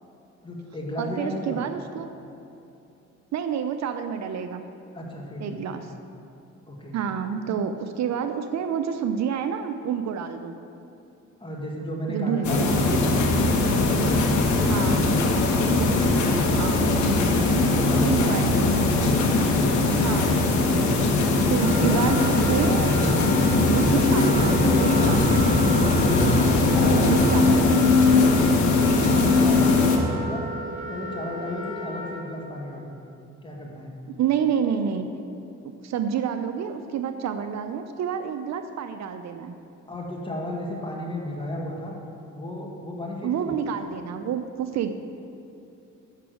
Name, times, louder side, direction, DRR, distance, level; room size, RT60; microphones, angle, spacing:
voice 1, 0.4-1.6 4.9-5.8 6.7-7.0 11.4-13.2 13.8-14.9 17.6-18.4 19.4-19.8 21.6-22.0 24.2-24.5 26.3-27.2 27.4-27.7 29.0-30.4 30.8-32.9 33.4-33.9 39.9-42.0 42.3-43.5, left 1 dB, 15° left, -2 dB, 1.6 m, -34 dB
voice 2, 1.0-2.1 3.3-4.6 5.4-5.9 6.9-10.5 12.1-13.5 14.7-16.9 18.0-18.9 20.0-20.4 21.5-22.9 23.7-25.3 27.0-27.6 34.2-35.1 35.8-39.6 43.2-44.9, right 7 dB, 65° right, 8 dB, 0.5 m, -29 dB
sound 1, 12.4-30.0, left 3 dB, 70° left, 1.1 m, -20 dB
Wind instrument woodwind instrument, 21.5-32.2, right 2 dB, 25° right, 2.1 m, -34 dB
6.7 x 6.0 x 6.2 m, 2.8 s
cardioid pair, 90°, 30 cm